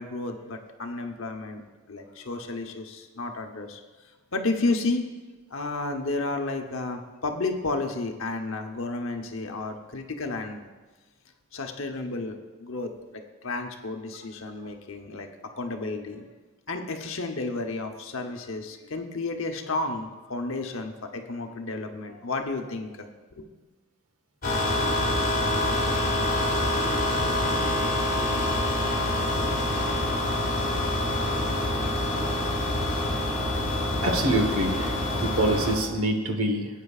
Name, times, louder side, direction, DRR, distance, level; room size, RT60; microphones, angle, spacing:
voice 1, 0.0-3.8 4.3-5.0 5.5-10.7 11.5-15.3 15.6-16.3 16.7-23.1 23.4-23.5, left 3 dB, 65° left, 4 dB, 0.9 m, -32 dB
sound 1, 24.4-35.8, left 1 dB, 40° left, 1.9 m, -26 dB
voice 2, 34.0-36.7, right 1 dB, 80° right, 4 dB, 1.3 m, -26 dB
16.5 x 9.0 x 2.4 m, 1.3 s
head